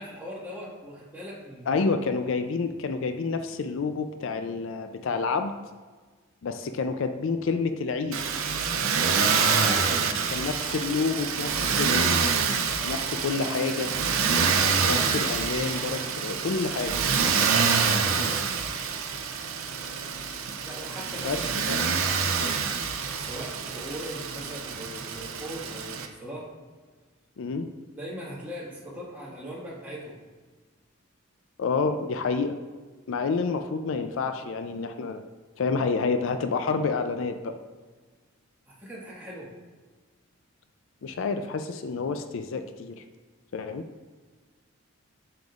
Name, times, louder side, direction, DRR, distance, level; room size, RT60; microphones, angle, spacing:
voice 1, 0.0-1.9 9.3-10.1 17.8-18.7 20.6-22.5 23.1-26.5 27.9-30.2 38.7-39.5, equal, 10° right, -6 dB, 1.6 m, -40 dB
voice 2, 1.7-5.5 6.4-8.2 10.3-12.3 12.8-13.9 14.8-17.0 21.2-21.4 21.7-21.8 27.4-27.7 31.6-32.6 33.1-35.3 35.6-37.6 41.0-43.0 43.5-43.8, left 4 dB, 65° left, 8 dB, 0.4 m, -29 dB
Motor vehicle (road), 8.1-26.1, right 5 dB, 80° right, 0.6 m, -26 dB
7.7 x 6.7 x 2.4 m, 1.4 s
head